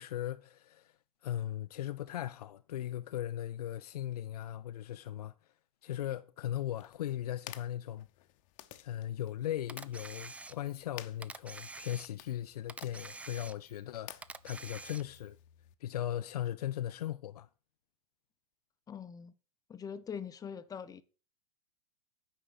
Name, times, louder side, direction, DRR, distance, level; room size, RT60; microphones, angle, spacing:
voice 1, 0.0-5.5 5.8-8.1 8.8-15.4 15.8-17.5, left 12 dB, 80° left, 0.5 m, -38 dB
sound 1, 6.7-15.7, left 15 dB, 55° left, 0.9 m, -54 dB
Camera, 9.7-10.8 11.2-12.4 12.7-13.8 14.2-15.3, right 3 dB, 5° right, 0.4 m, -47 dB
voice 2, 18.9-19.3 19.7-21.0, left 7 dB, 20° left, 0.7 m, -42 dB
8.9 x 5.4 x 6.8 m
hypercardioid pair, 105°, 19 cm